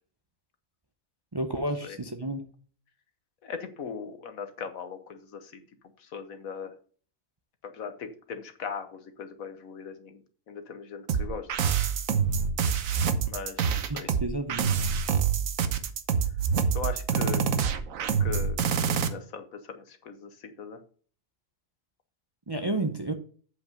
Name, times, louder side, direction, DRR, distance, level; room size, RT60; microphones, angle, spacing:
voice 1, 1.3-2.4 13.9-14.7 22.5-23.1, right 2 dB, 25° right, 6 dB, 0.5 m, -31 dB
voice 2, 3.4-5.6 6.1-6.7 7.7-10.2 10.5-11.5 13.3-14.1 16.7-17.4 18.2-18.6 18.9-20.3 20.6-20.8, left 6 dB, 85° left, 8 dB, 1.5 m, -39 dB
sound 1, 11.1-19.1, right 7 dB, 75° right, 1.2 m, -26 dB
8.0 x 5.4 x 5.3 m, 0.43 s
omnidirectional pair, 1.4 m